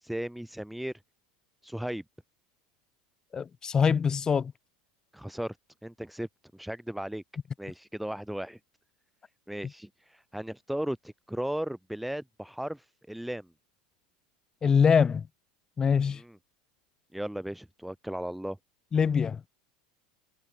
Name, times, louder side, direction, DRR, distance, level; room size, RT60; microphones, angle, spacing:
voice 1, 0.0-0.9 1.6-2.0 5.1-5.6 5.8-7.2 7.6-8.6 9.5-13.5 16.2-16.4 17.1-18.6, right 1 dB, ahead, 1.1 m, -36 dB
voice 2, 3.3-4.5 14.6-15.3 15.8-16.2 18.9-19.4, left 6 dB, 25° left, 0.3 m, -24 dB
hypercardioid pair, 95°, 3 cm